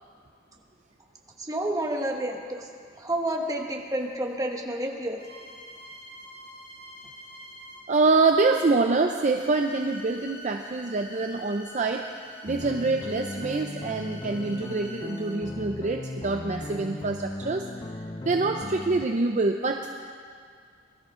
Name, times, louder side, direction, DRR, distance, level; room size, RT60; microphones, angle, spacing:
voice 1, 1.4-2.7 3.0-5.2, right 1 dB, 20° right, 2 dB, 1.3 m, -30 dB
sound 1, 5.2-8.0 9.0-15.6 16.5-16.6, equal, 45° left, 3.9 m, -46 dB
voice 2, 7.9-12.1 12.4-17.7 18.3-20.0, right 3 dB, 40° right, 4 dB, 0.5 m, -25 dB
sound 2, 12.5-19.1, left 1 dB, 20° left, 0.5 m, -37 dB
20.5 x 13.0 x 3.8 m, 2.2 s
head